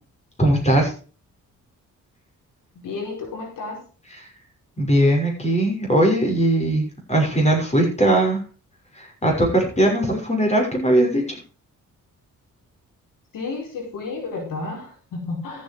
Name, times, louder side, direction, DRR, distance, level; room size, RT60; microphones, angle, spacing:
voice 1, 0.4-0.9 4.8-8.4 8.9-11.2, right 1 dB, 20° left, 1 dB, 6.1 m, -19 dB
voice 2, 2.8-3.8 13.3-15.6, left 3 dB, 80° left, 1 dB, 4.8 m, -31 dB
13.5 x 8.6 x 4.7 m, 0.37 s
cardioid pair, 95°, 32 cm